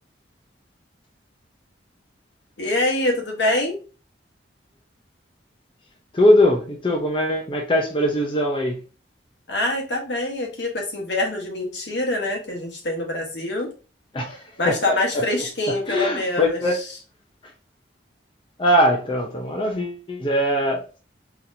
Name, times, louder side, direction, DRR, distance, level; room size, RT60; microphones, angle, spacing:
voice 1, 2.6-3.8 9.5-13.7 14.6-16.6, left 1 dB, 70° left, 1.2 m, -25 dB
voice 2, 6.1-8.8 14.1-15.2 15.7-16.8 18.6-21.0, left 1 dB, 25° left, 0.6 m, -21 dB
4.0 x 3.0 x 2.6 m
head